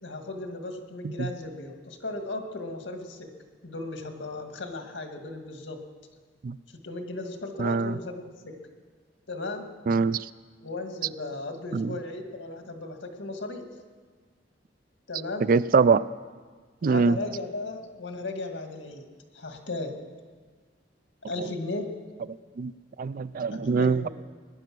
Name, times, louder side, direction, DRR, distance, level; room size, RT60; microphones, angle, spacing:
voice 1, 0.0-3.3 3.6-5.8 6.8-8.5 9.3-9.7 10.6-13.7 15.1-15.5 16.8-19.0 19.3-20.0 21.3-21.9 23.5-24.1, left 2 dB, 85° left, 5 dB, 1.9 m, -36 dB
voice 2, 7.6-8.0 9.9-10.3 11.7-12.0 15.5-16.1 16.8-17.2 21.4-21.5 22.6-22.7 23.0-24.1, right 4 dB, 50° right, 17 dB, 0.3 m, -23 dB
20.0 x 10.5 x 6.1 m, 1.5 s
head